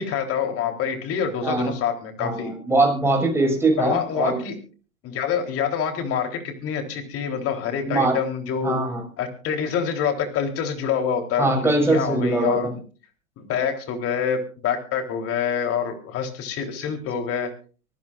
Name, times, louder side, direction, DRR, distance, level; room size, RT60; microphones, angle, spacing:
voice 1, 0.0-2.5 3.8-4.6 5.0-8.8 9.2-12.8 13.4-17.5, left 7 dB, 35° left, 5 dB, 3.7 m, -26 dB
voice 2, 2.2-4.4 7.8-8.2 8.6-9.0 11.4-12.7, right 2 dB, 5° right, 1 dB, 6.6 m, -22 dB
24.5 x 15.0 x 2.5 m, 0.38 s
hypercardioid pair, 110°, 41 cm